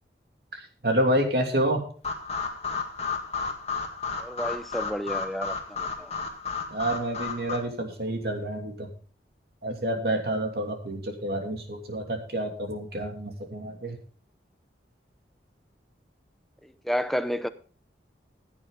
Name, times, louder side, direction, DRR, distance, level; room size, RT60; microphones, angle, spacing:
voice 1, 0.5-1.9 6.7-8.9 9.6-14.0, right 1 dB, 60° right, 3 dB, 2.8 m, -28 dB
sound 1, 2.0-7.6, left 5 dB, 35° left, 1.9 m, -33 dB
voice 2, 4.2-6.1 16.6-17.5, equal, ahead, 10 dB, 0.6 m, -31 dB
15.5 x 8.7 x 3.9 m, 0.41 s
head